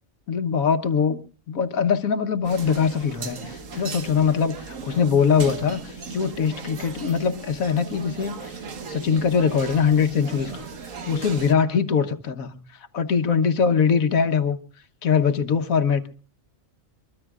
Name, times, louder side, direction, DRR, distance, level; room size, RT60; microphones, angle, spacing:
voice 1, 0.3-1.2 1.5-8.6 8.9-10.7 11.1-14.6 15.0-16.1, left 6 dB, 90° left, 9 dB, 1.5 m, -22 dB
sound 1, 2.4-11.5, right 5 dB, 70° right, 1.7 m, -37 dB
23.5 x 23.0 x 2.4 m, 0.37 s
omnidirectional pair, 1.4 m